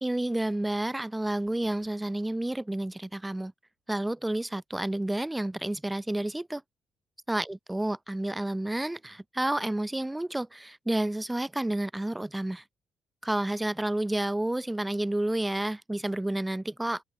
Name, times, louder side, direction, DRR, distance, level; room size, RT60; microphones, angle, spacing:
voice 1, 0.0-3.5 3.9-6.6 7.3-12.6 13.2-17.0, right 1 dB, 10° right, 1.7 m, -30 dB
open air
cardioid pair, 90°, 0 cm